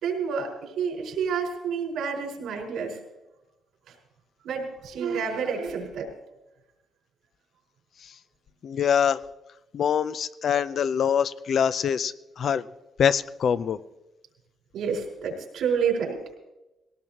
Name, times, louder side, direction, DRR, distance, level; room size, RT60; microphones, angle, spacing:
voice 1, 0.0-3.0 4.4-6.1 10.5-10.7 14.7-16.2, right 6 dB, 80° right, -1 dB, 4.8 m, -29 dB
voice 2, 8.6-9.2 9.7-12.6 13.0-13.8, left 8 dB, 60° left, 14 dB, 0.5 m, -24 dB
19.5 x 18.5 x 3.0 m, 1.0 s
cardioid pair, 90°, 0 cm